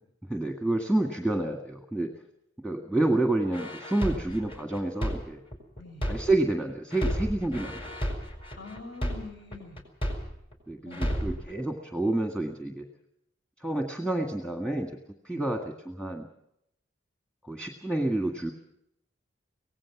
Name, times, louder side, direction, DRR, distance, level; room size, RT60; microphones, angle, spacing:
voice 1, 0.3-2.1 2.6-5.4 6.1-7.8 10.7-12.8 13.6-14.9 15.3-16.3 17.4-18.5, right 2 dB, 5° left, 3 dB, 1.7 m, -29 dB
sound 1, 3.5-6.5 6.9-10.5 10.9-11.5, equal, 30° left, 4.5 m, -32 dB
voice 2, 5.8-6.1 8.6-9.8 10.8-11.4 15.3-15.5, left 3 dB, 60° left, 4 dB, 5.7 m, -45 dB
24.5 x 18.0 x 6.0 m, 0.78 s
head